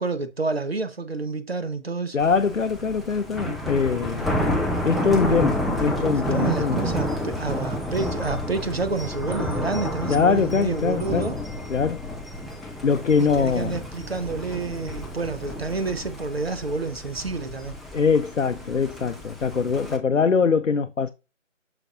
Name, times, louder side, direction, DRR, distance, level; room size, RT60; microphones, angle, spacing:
voice 1, 0.0-2.2 6.3-11.4 13.2-17.7, right 3 dB, 50° right, 0.9 m, -29 dB
voice 2, 2.1-4.3 4.8-6.9 10.1-11.3 11.7-12.0 12.6-13.8 17.9-21.1, left 5 dB, 70° left, 0.6 m, -23 dB
Thunder, 2.2-20.0, left 1 dB, ahead, 0.5 m, -30 dB
5.9 x 5.3 x 3.7 m
figure-of-eight pair, 165°, 39 cm